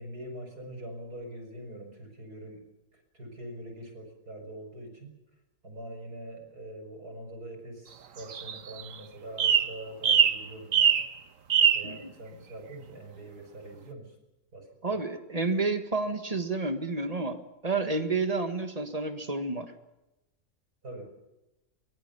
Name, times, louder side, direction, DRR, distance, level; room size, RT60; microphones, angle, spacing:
voice 1, 0.0-2.6 2.9-5.1 5.6-11.0 11.6-14.2 14.5-15.0 20.8-21.1, right 1 dB, 90° right, 3 dB, 5.6 m, -43 dB
sound 1, 8.2-9.0 9.4-9.7 10.0-10.4 10.7-11.1 11.5-11.9, right 8 dB, 60° right, 1.4 m, -22 dB
voice 2, 14.8-19.7, right 3 dB, 25° right, 8 dB, 1.6 m, -30 dB
23.5 x 20.0 x 6.9 m, 0.96 s
omnidirectional pair, 1.6 m